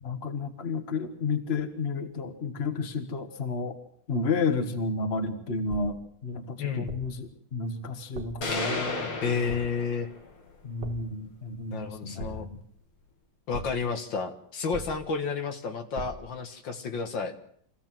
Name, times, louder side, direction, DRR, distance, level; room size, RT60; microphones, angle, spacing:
voice 1, 0.0-3.8 4.1-9.3 10.6-12.6, left 4 dB, 30° left, 8 dB, 1.8 m, -31 dB
sound 1, 5.7-6.2 6.9-7.3 8.1-8.5 9.5-9.9 10.8-11.2 12.2-12.7 13.5-14.0 14.7-15.3 15.9-16.4, right 2 dB, 60° right, 2.3 m, -41 dB
voice 2, 6.6-7.0 9.2-10.1 11.7-12.5 13.5-17.4, left 5 dB, 65° left, 6 dB, 2.1 m, -31 dB
sound 2, 8.4-10.4, left 3 dB, 90° left, 3.7 m, -33 dB
25.5 x 16.0 x 7.6 m, 0.64 s
omnidirectional pair, 2.2 m